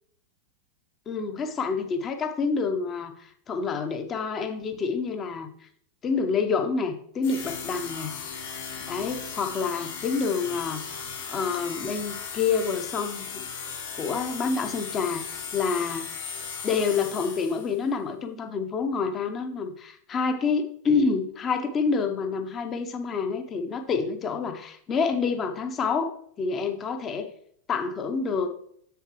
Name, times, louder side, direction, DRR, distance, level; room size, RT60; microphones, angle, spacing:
voice 1, 1.1-5.5 6.0-8.1 8.9-11.0 11.3-13.4 14.0-16.1 16.6-27.3 27.7-28.5, left 5 dB, 25° left, 7 dB, 0.9 m, -28 dB
sound 1, 7.2-17.8, left 6 dB, 55° left, 3.4 m, -37 dB
7.4 x 6.8 x 3.1 m, 0.65 s
figure-of-eight pair, 90°, 0 cm